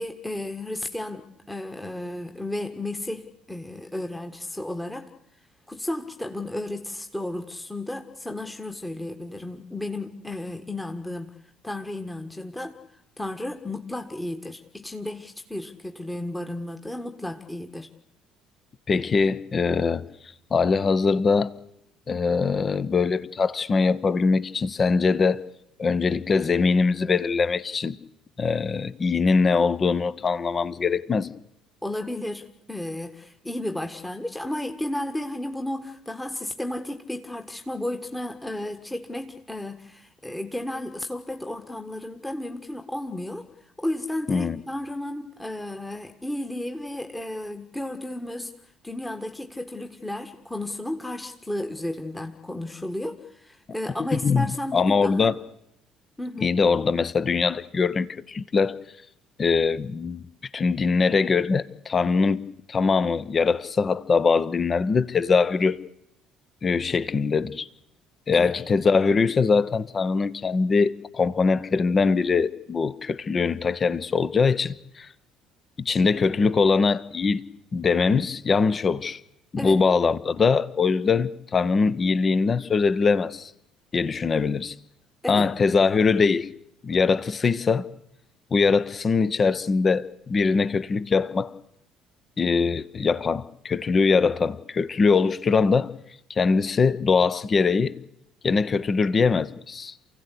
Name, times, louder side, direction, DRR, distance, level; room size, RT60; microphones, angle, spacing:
voice 1, 0.0-5.1 5.7-11.4 11.6-12.8 13.2-17.9 31.8-43.5 43.8-48.5 48.8-55.3 56.2-56.5 68.3-68.5 79.6-79.8 85.2-85.5, left 1 dB, 10° left, 1.6 m, -33 dB
voice 2, 18.9-20.0 20.5-21.5 22.1-25.4 25.8-28.0 28.4-31.3 44.3-44.6 54.1-55.4 56.4-58.8 59.4-60.3 60.5-65.8 66.6-67.7 68.3-75.1 75.8-77.4 77.7-79.2 79.5-83.5 83.9-84.7 85.3-86.5 86.8-87.9 88.5-91.5 92.4-95.9 96.3-97.9 98.4-99.9, left 4 dB, 35° left, 1.0 m, -22 dB
29.0 x 16.5 x 8.3 m
figure-of-eight pair, 55°, 0 cm